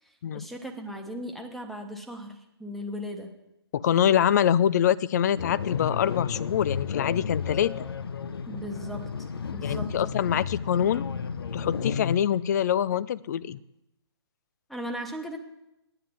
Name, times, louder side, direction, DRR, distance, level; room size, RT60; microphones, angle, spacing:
voice 1, 0.0-3.4 8.5-9.1 9.5-10.0 14.7-15.4, equal, ahead, 4 dB, 1.2 m, -37 dB
voice 2, 3.7-7.9 9.6-11.1 11.5-13.6, left 9 dB, 40° left, 17 dB, 0.5 m, -25 dB
sound 1, 5.4-12.2, left 6 dB, 60° left, 0.8 m, -32 dB
10.0 x 9.5 x 7.7 m, 0.87 s
figure-of-eight pair, 135°, 14 cm